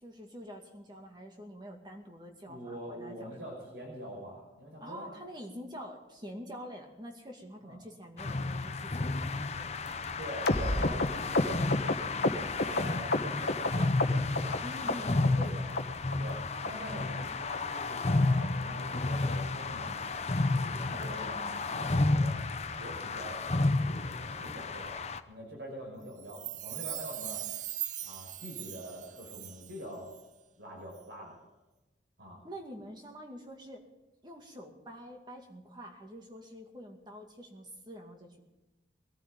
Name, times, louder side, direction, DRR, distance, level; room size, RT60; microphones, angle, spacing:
voice 1, 0.0-3.4 4.8-9.9 14.6-15.6 32.4-33.9 34.2-38.5, equal, 25° right, 2 dB, 2.3 m, -46 dB
voice 2, 2.5-5.1 7.6-7.8 10.1-11.6 12.6-13.9 14.3-15.8 16.2-22.4 22.8-25.0 25.3-27.4 28.0-30.1 30.6-31.4 32.2-32.4, equal, 70° right, -1 dB, 5.6 m, -45 dB
sound 1, 8.2-25.2, left 2 dB, 35° left, 0.7 m, -31 dB
sound 2, 10.5-13.7 14.0-14.6 14.9-15.5 15.8-15.9 16.1-16.3 16.6-16.7 17.0-17.2 17.5-17.6 17.9-18.1 18.4-18.5 18.8-19.0 19.3-19.4 19.7-19.8 20.2-20.3, left 2 dB, 55° left, 1.3 m, -30 dB
Chime, 26.2-29.8 30.1-30.2, right 13 dB, 40° right, 0.6 m, -40 dB
22.0 x 14.0 x 3.9 m, 1.1 s
head